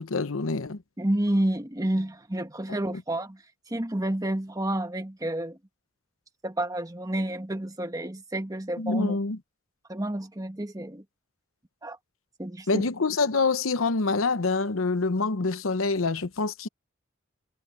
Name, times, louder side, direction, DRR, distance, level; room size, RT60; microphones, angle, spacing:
voice 1, 0.0-0.8 8.8-9.4 12.7-16.7, left 3 dB, 80° left, 0.9 m, -26 dB
voice 2, 1.0-5.6 6.4-9.2 9.9-11.0 11.8-12.0 12.4-12.8, right 1 dB, 15° right, 1.4 m, -30 dB
head